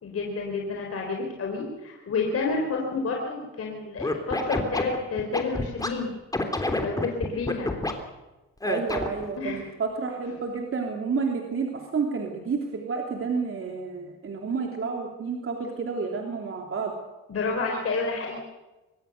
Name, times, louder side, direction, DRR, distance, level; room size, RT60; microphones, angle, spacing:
voice 1, 0.0-6.1 6.8-7.7 9.3-9.6 17.3-18.4, left 4 dB, 50° left, 1 dB, 4.1 m, -29 dB
Scratching (performance technique), 4.0-5.9 6.3-7.9 8.6-9.3, left 2 dB, 10° left, 3.2 m, -27 dB
voice 2, 8.6-16.9, right 5 dB, 45° right, 2 dB, 3.3 m, -30 dB
24.0 x 19.5 x 6.8 m, 1.1 s
cardioid pair, 90°, 30 cm